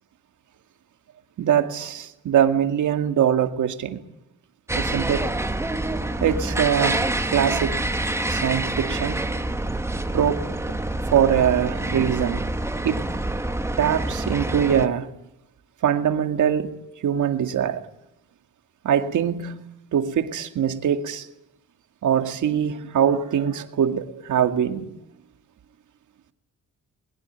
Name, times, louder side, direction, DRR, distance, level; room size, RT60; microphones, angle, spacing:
voice 1, 1.4-4.0 4.7-5.3 6.2-7.8 8.3-9.3 10.1-10.8 11.1-12.5 12.8-13.0 13.8-15.1 15.8-16.8 17.0-17.9 18.8-19.6 19.9-21.3 22.0-24.8, right 9 dB, 70° right, 2.3 m, -23 dB
sound 1, 4.7-14.9, right 2 dB, 10° right, 1.4 m, -27 dB
22.0 x 22.0 x 9.5 m
wide cardioid pair, 175°, 31 cm